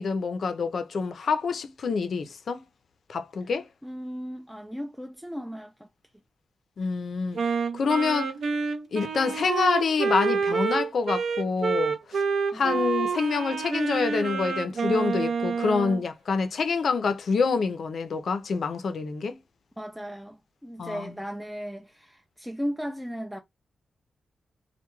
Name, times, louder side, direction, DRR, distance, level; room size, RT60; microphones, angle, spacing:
voice 1, 0.0-2.6 3.1-3.7 6.8-7.4 7.7-8.3 8.9-12.2 12.5-19.4 20.8-21.1, left 5 dB, 65° left, 0.4 m, -27 dB
voice 2, 3.8-5.9 12.5-12.8 19.8-23.4, equal, 5° right, 0.3 m, -36 dB
Wind instrument woodwind instrument, 7.4-16.0, right 5 dB, 70° right, 0.5 m, -28 dB
2.2 x 2.1 x 2.9 m
cardioid pair, 95°, 0 cm